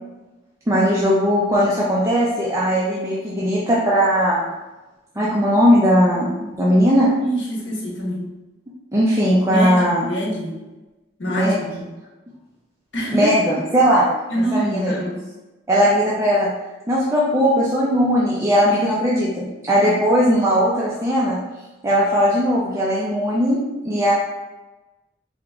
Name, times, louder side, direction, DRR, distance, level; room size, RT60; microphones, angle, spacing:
voice 1, 0.7-4.4 5.2-7.1 8.9-10.1 11.3-11.9 13.1-14.1 14.4-15.0 15.7-16.5 16.9-21.4 21.8-23.6 23.8-24.1, equal, 15° right, -6 dB, 0.5 m, -18 dB
voice 2, 7.1-8.3 9.5-10.5 11.2-11.6 12.9-13.3 14.3-15.2, equal, 70° left, -3 dB, 1.2 m, -25 dB
3.6 x 2.9 x 3.5 m, 1.1 s
head